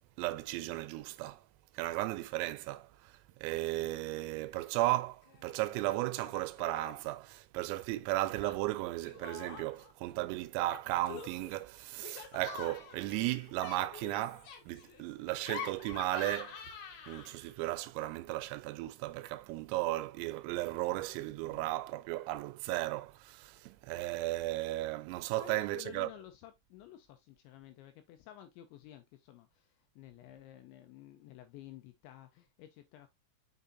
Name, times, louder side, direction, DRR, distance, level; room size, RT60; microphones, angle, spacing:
voice 1, 0.2-1.4 1.7-3.1 3.4-16.6 17.1-26.1, right 17 dB, 90° right, 3.4 m, -35 dB
Laughter, 4.5-5.0 5.2-5.8 6.2-7.1 8.4-9.9 10.6-17.5, left 7 dB, 65° left, 2.6 m, -47 dB
voice 2, 25.4-33.1, left 12 dB, 85° left, 2.7 m, -52 dB
6.7 x 6.1 x 2.6 m
omnidirectional pair, 5.9 m